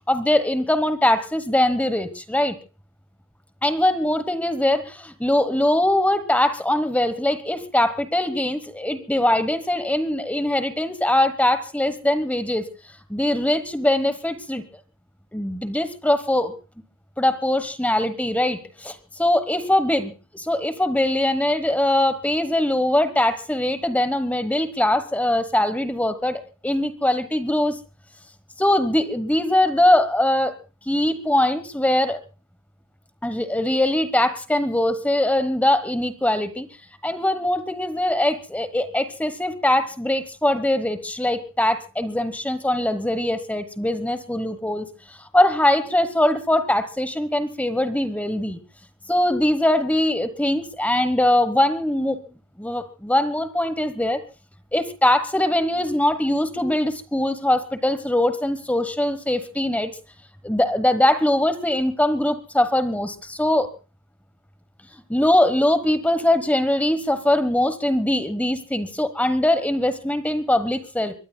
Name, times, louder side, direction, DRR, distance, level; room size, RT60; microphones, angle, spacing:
voice 1, 0.1-2.6 3.6-12.7 13.1-14.6 15.3-16.5 17.2-27.8 28.6-30.6 30.9-32.2 33.2-36.7 37.0-48.6 49.1-52.2 52.6-54.2 54.7-59.9 60.4-63.7 65.1-71.1, left 1 dB, 5° left, 12 dB, 1.2 m, -22 dB
25.0 x 22.0 x 2.3 m, 0.33 s
head